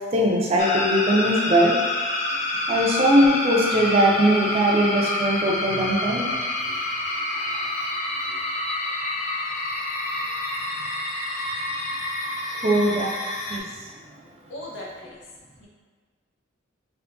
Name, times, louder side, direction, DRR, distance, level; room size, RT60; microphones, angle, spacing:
voice 1, 0.1-1.7 2.7-6.3 12.6-13.1 13.5-13.6, right 1 dB, 30° right, -2 dB, 0.5 m, -20 dB
sound 1, 0.6-13.6, left 2 dB, 35° left, 0.3 m, -28 dB
voice 2, 14.5-15.2 15.6-15.7, left 1 dB, 65° left, -5 dB, 0.7 m, -38 dB
3.5 x 2.7 x 2.5 m, 1.5 s
head